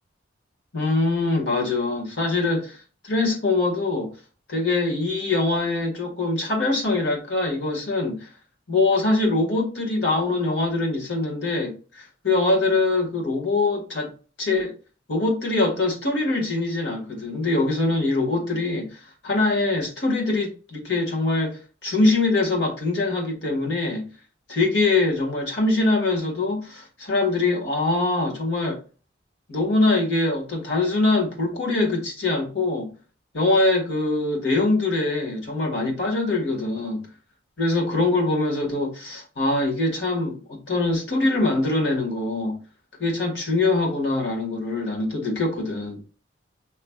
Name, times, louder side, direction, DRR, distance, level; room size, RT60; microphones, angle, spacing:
voice 1, 0.7-2.8 3.0-4.1 4.5-8.3 8.7-14.1 14.4-14.7 15.1-24.1 24.5-28.8 29.5-32.9 33.3-37.0 37.6-42.6 43.0-46.0, left 2 dB, 75° left, 1.7 m, -23 dB
5.8 x 3.2 x 2.3 m
head